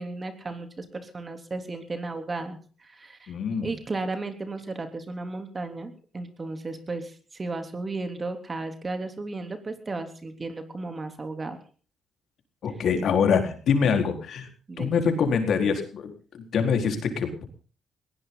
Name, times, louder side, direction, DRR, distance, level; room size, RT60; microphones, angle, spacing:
voice 1, 0.0-11.6 12.7-12.8 14.7-14.9, right 3 dB, 30° right, 8 dB, 3.4 m, -34 dB
voice 2, 3.3-3.7 12.6-14.5 14.8-16.1 16.5-17.4, left 6 dB, 65° left, 5 dB, 4.4 m, -24 dB
20.5 x 17.5 x 4.0 m, 0.39 s
cardioid pair, 90°, 0 cm